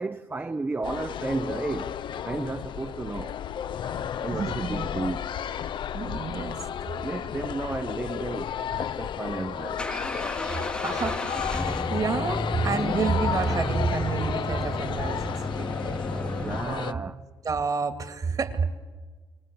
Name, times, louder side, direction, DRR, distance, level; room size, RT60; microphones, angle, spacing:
voice 1, 0.0-3.4 4.2-5.4 7.0-9.9 15.9-16.1 16.4-17.2, right 3 dB, 20° right, 0.8 m, -33 dB
sound 1, 0.8-16.9, left 9 dB, 65° left, 0.7 m, -33 dB
voice 2, 4.3-4.8 5.9-6.7 10.5-17.1 17.4-18.7, right 4 dB, 45° right, 2.5 m, -30 dB
sound 2, 8.8-16.6, left 1 dB, 10° left, 1.1 m, -32 dB
27.5 x 19.0 x 7.9 m
cardioid pair, 95°, 9 cm